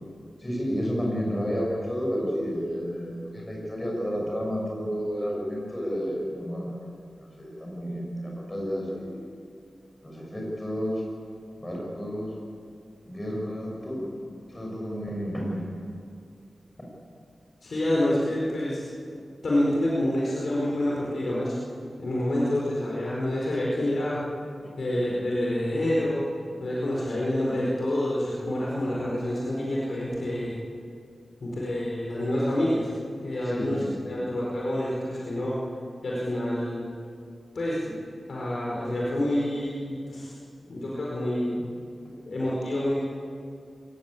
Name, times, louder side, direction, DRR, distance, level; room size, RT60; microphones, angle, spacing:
voice 1, 0.4-6.8 7.4-9.2 10.0-11.0 11.6-12.3 13.1-14.1 14.5-15.7 33.4-33.9, equal, 15° left, -2 dB, 6.6 m, -31 dB
voice 2, 17.6-18.8 19.4-21.6 22.0-24.2 24.8-26.2 26.6-30.5 31.4-32.9 33.2-35.6 36.0-36.9 37.5-38.0 38.3-40.4 40.7-41.7 42.2-42.9, left 1 dB, 60° left, -5 dB, 4.8 m, -27 dB
22.5 x 19.0 x 8.5 m, 2.4 s
wide cardioid pair, 145°, 0 cm